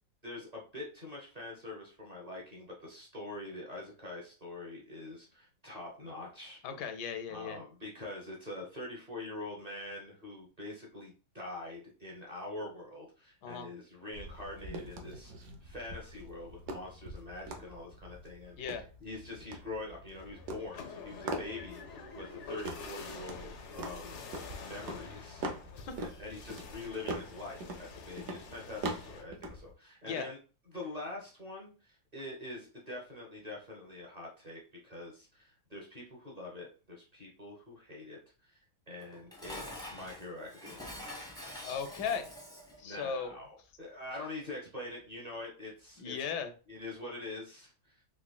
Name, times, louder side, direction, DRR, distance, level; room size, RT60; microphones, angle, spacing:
voice 1, 0.2-6.6 7.3-18.7 19.0-24.2 24.6-25.5 26.2-30.4 30.7-38.6 38.9-41.1 42.8-46.1 46.7-48.0, left 2 dB, 30° right, -2 dB, 0.9 m, -44 dB
voice 2, 6.6-7.6 13.4-13.7 18.6-18.8 25.9-26.0 30.1-30.3 41.6-42.3 42.8-43.4 46.0-46.5, left 6 dB, 80° left, 8 dB, 1.2 m, -36 dB
sound 1, 14.1-29.7, right 2 dB, 60° right, 0.7 m, -44 dB
sound 2, 20.1-29.2, left 4 dB, 65° left, 0.7 m, -48 dB
Dishes pots and pans, 39.0-42.8, left 1 dB, 5° left, 0.6 m, -45 dB
3.9 x 3.0 x 2.3 m, 0.35 s
omnidirectional pair, 1.8 m